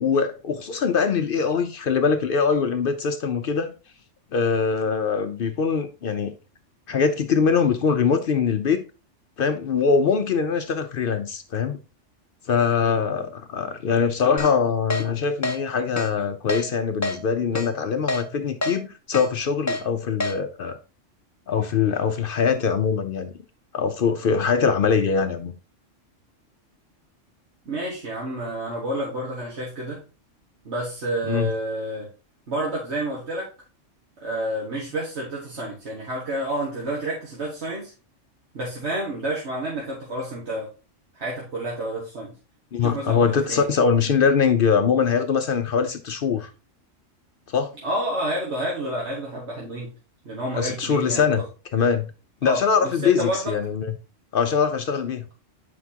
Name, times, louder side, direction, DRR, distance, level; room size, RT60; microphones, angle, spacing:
voice 1, 0.0-3.7 4.3-6.3 6.9-8.8 9.4-11.8 12.5-20.8 21.5-23.3 23.7-25.5 31.3-31.5 42.7-46.5 47.5-47.7 50.5-51.4 51.7-52.1 52.4-54.0 54.3-55.3, left 6 dB, 55° left, 0.7 m, -22 dB
Keyboard (musical), 14.4-14.5 14.9-15.0 15.4-15.6 16.0-16.1 16.5-16.6 17.0-17.2 17.6-17.7 18.1-18.2 18.6-18.8 19.1-19.3 19.7-19.8 20.2-20.3, left 1 dB, 25° left, 0.4 m, -26 dB
voice 2, 27.7-30.0 30.7-32.1 32.5-33.5 34.2-37.9 38.5-40.7 41.2-42.3 42.8-43.7 47.8-49.9 50.3-51.4 52.4-53.5, right 1 dB, 60° right, 1.8 m, -29 dB
8.1 x 5.1 x 2.7 m
omnidirectional pair, 1.3 m